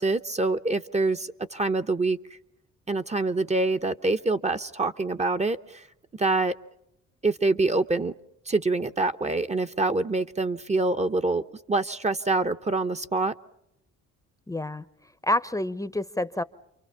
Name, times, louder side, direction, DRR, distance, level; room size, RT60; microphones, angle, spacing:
voice 1, 0.0-2.2 2.9-5.9 6.1-6.5 7.2-8.1 8.5-11.4 11.7-13.3, right 3 dB, 20° right, 8 dB, 0.8 m, -25 dB
voice 2, 14.5-14.8 15.2-16.4, left 1 dB, 10° left, 14 dB, 0.8 m, -28 dB
28.5 x 23.5 x 5.7 m, 0.84 s
cardioid pair, 90°, 30 cm